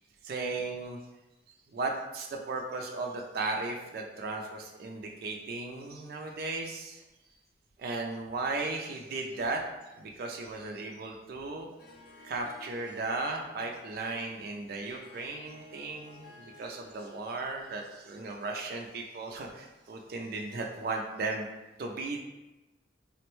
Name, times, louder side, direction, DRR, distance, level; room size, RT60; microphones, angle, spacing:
voice 1, 0.2-1.0 1.7-7.0 7.8-9.6 10.0-11.7 12.2-21.5 21.8-22.2, right 3 dB, 50° right, 1 dB, 0.3 m, -36 dB
Harp, 11.8-17.3, left 1 dB, 60° left, 0.5 m, -54 dB
3.4 x 2.1 x 3.0 m, 1.0 s
head